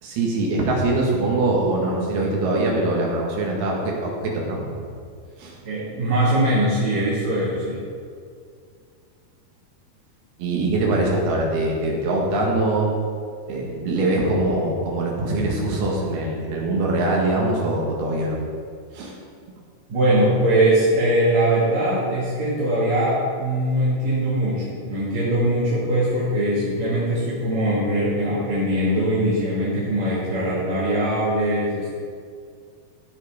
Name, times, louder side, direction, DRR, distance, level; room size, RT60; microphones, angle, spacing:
voice 1, 0.0-4.9 5.4-5.6 10.4-12.9 13.5-18.4 18.9-19.1, right 2 dB, 90° right, -2 dB, 3.8 m, -23 dB
voice 2, 5.6-7.8 19.9-31.9, right 1 dB, 50° right, -10 dB, 3.6 m, -21 dB
15.5 x 5.8 x 5.1 m, 2.2 s
omnidirectional pair, 4.4 m